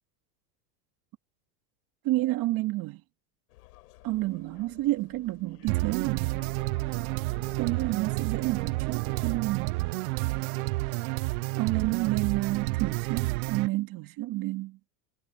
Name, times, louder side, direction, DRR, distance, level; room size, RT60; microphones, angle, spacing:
voice 1, 2.0-3.0 4.0-6.4 7.6-9.8 11.6-14.8, right 18 dB, 50° right, 2.6 m, -30 dB
sound 1, 3.5-9.5, left 19 dB, 80° left, 7.2 m, -55 dB
sound 2, 5.7-13.7, right 24 dB, 70° right, 0.7 m, -30 dB
supercardioid pair, 130°, 45 cm